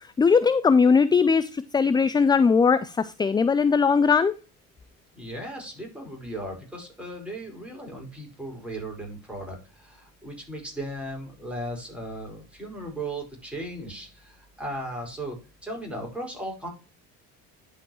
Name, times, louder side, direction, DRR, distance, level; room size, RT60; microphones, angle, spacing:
voice 1, 0.2-4.3, left 5 dB, 10° left, 16 dB, 0.3 m, -20 dB
voice 2, 5.1-15.4 15.6-16.7, right 1 dB, 5° right, -1 dB, 5.1 m, -36 dB
11.5 x 5.5 x 2.9 m, 0.32 s
hypercardioid pair, 75°, 38 cm